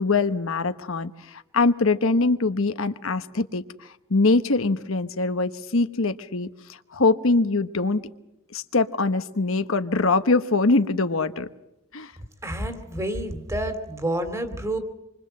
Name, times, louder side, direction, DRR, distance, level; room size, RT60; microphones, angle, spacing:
voice 1, 0.0-8.1 8.5-11.5 11.9-12.1, left 3 dB, 65° left, 10 dB, 1.1 m, -23 dB
voice 2, 12.4-14.8, right 1 dB, 15° right, 9 dB, 2.4 m, -29 dB
27.0 x 24.5 x 7.7 m, 0.88 s
head